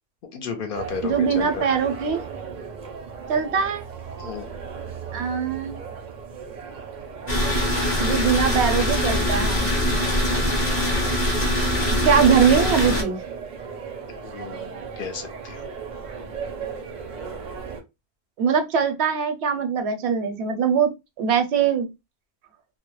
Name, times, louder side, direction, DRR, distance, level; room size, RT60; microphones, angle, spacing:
voice 1, 0.3-1.7 4.2-4.5 14.1-15.7, left 5 dB, 60° left, 0.7 m, -33 dB
sound 1, 0.7-17.8, right 5 dB, 55° right, 0.5 m, -37 dB
voice 2, 1.0-2.2 3.3-3.8 5.1-5.8 8.0-9.7 12.0-13.2 18.4-20.9 21.2-21.9, right 6 dB, 80° right, 0.8 m, -21 dB
sound 2, 7.3-13.0, left 1 dB, 15° left, 0.5 m, -22 dB
2.2 x 2.0 x 2.9 m
omnidirectional pair, 1.1 m